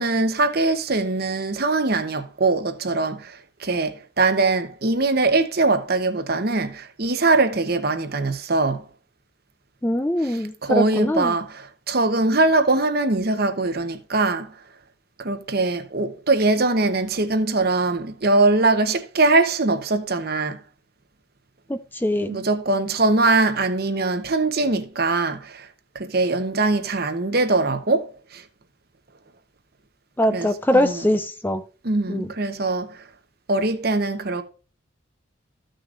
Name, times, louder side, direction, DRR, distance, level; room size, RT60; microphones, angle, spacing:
voice 1, 0.0-8.8 10.2-14.5 15.2-20.6 22.2-25.7 25.9-28.4 30.3-31.0 31.8-33.0 33.5-34.4, right 3 dB, 50° right, 0.9 m, -22 dB
voice 2, 9.8-11.4 21.7-22.4 30.2-31.6 32.1-32.3, left 1 dB, 10° left, 0.4 m, -22 dB
14.5 x 6.3 x 2.5 m
head